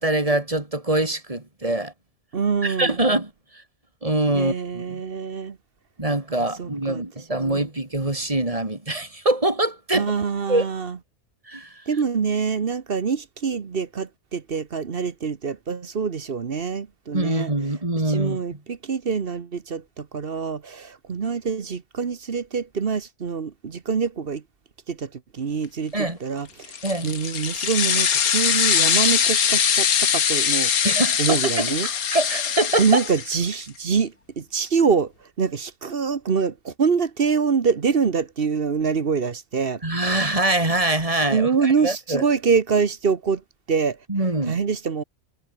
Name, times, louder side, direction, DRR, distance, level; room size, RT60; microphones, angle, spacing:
voice 1, 0.0-1.9 2.6-3.3 4.0-5.0 6.0-10.1 10.5-10.7 11.5-11.8 17.1-18.4 25.9-26.2 26.8-27.1 30.8-33.0 39.8-42.3 44.1-44.6, right 1 dB, 25° right, 2.9 m, -24 dB
voice 2, 2.3-3.0 4.3-5.6 6.6-7.0 7.4-7.6 9.9-11.0 11.9-17.5 18.1-24.4 24.9-26.8 27.0-30.7 31.2-31.9 32.8-35.1 35.4-39.8 41.3-43.4 43.7-44.0 44.5-45.0, right 5 dB, 45° right, 1.2 m, -25 dB
sound 1, 26.6-33.6, left 7 dB, 85° left, 1.8 m, -22 dB
omnidirectional pair, 1.5 m